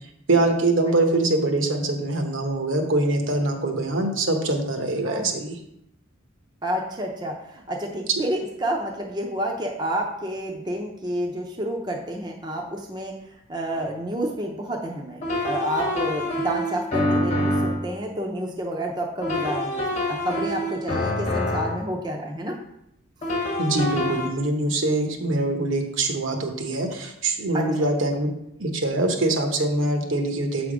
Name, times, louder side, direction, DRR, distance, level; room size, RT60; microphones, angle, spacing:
voice 1, 0.3-5.6 23.6-28.3 28.6-30.7, right 2 dB, 65° right, 4 dB, 1.0 m, -23 dB
voice 2, 6.6-13.1 13.5-22.6 27.5-27.9, right 1 dB, 20° right, 1 dB, 0.6 m, -29 dB
sound 1, 13.7-13.9 15.2-17.9 19.2-21.9 23.2-24.3, left 1 dB, 30° left, 1.2 m, -26 dB
7.5 x 3.5 x 5.0 m, 0.79 s
head